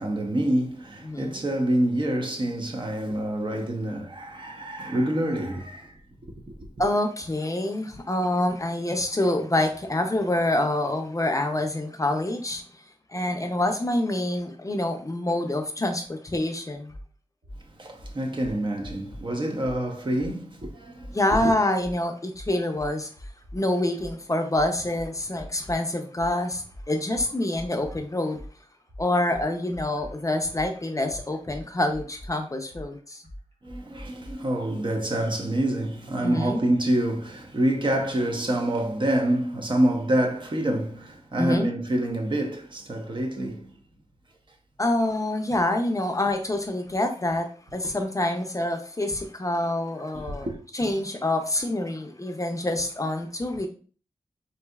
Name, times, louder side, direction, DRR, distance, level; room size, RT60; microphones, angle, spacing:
voice 1, 0.0-6.0 6.5-6.9 17.6-21.5 33.6-43.7 47.8-47.9 50.1-50.6, right 1 dB, 40° right, 0.7 m, -27 dB
voice 2, 1.0-1.4 6.8-12.6 13.1-16.9 21.1-23.1 23.5-28.4 29.0-33.2 36.2-36.6 41.4-41.7 44.8-50.5 50.7-53.7, left 1 dB, 25° left, 0.5 m, -26 dB
sound 1, 16.9-17.1 17.4-17.6 18.0-19.2 19.6-19.8 20.2-21.4 21.8-22.0 22.3-23.6 24.0-28.0 28.3-34.3, equal, 60° right, 1.5 m, -42 dB
4.0 x 2.7 x 2.3 m
cardioid pair, 55°, 12 cm